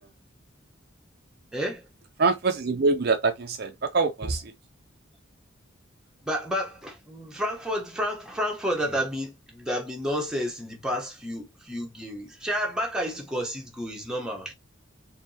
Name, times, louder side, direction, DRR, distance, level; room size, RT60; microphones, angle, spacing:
voice 1, 1.5-1.8 6.3-14.5, equal, 5° right, 1.0 m, -30 dB
voice 2, 2.2-4.5, right 4 dB, 50° right, 0.5 m, -24 dB
4.4 x 2.8 x 2.8 m
head